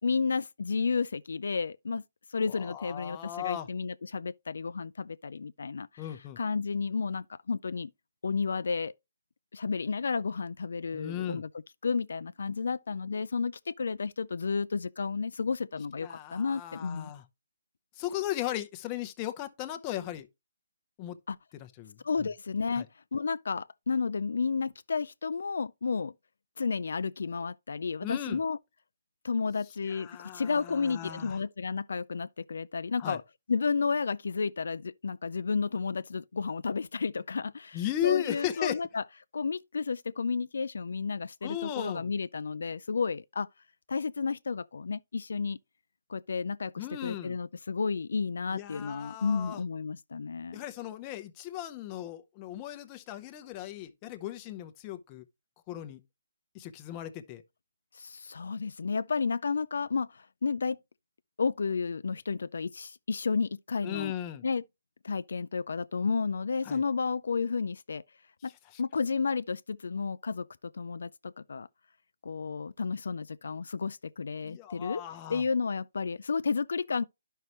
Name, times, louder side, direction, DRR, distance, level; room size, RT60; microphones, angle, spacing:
voice 1, 0.0-2.0 2.3-7.9 8.2-8.9 9.5-11.5 11.8-17.1 21.3-21.4 22.0-22.8 23.1-26.1 26.6-28.6 29.2-33.2 33.5-39.0 39.3-43.5 43.9-45.6 46.1-50.6 57.9-60.8 61.4-64.1 64.4-64.6 65.0-68.0 68.4-68.5 68.8-71.7 72.2-75.0 75.3-77.0, left 5 dB, 70° left, 0.3 m, -32 dB
voice 2, 2.5-3.7 6.0-6.4 10.9-11.4 16.0-17.2 18.0-20.3 21.0-21.2 21.6-22.3 22.8-22.9 28.0-28.4 29.8-31.4 33.0-33.2 37.7-38.8 41.4-42.1 46.8-47.4 48.5-49.6 50.5-55.2 55.7-56.0 56.5-57.4 63.8-64.4 66.6-66.8 68.7-68.8 74.4-75.4, left 12 dB, 20° left, 0.7 m, -36 dB
11.0 x 5.5 x 2.9 m
hypercardioid pair, 160°, 0 cm